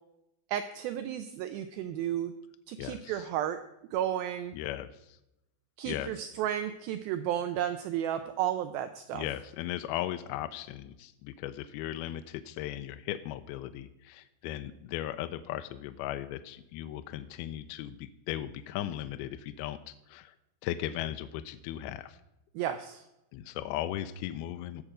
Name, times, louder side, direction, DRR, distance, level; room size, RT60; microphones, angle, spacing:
voice 1, 0.5-2.3 2.7-3.6 3.9-4.5 5.8-9.3 22.6-23.0, right 11 dB, 90° right, 10 dB, 2.1 m, -33 dB
voice 2, 2.8-3.3 4.5-4.9 5.9-6.1 9.1-20.3 20.6-22.2 23.3-24.8, left 13 dB, 85° left, 10 dB, 2.2 m, -37 dB
17.5 x 6.6 x 4.9 m, 0.89 s
omnidirectional pair, 4.8 m